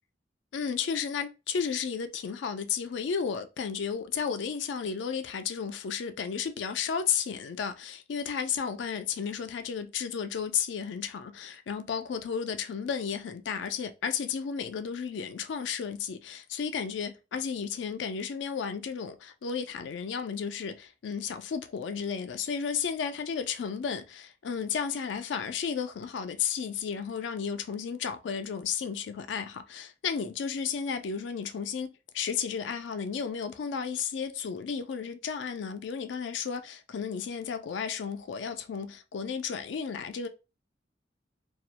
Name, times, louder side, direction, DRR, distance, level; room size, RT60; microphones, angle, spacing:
voice 1, 0.5-40.3, left 6 dB, 75° left, 0.4 m, -33 dB
2.3 x 2.1 x 2.8 m
head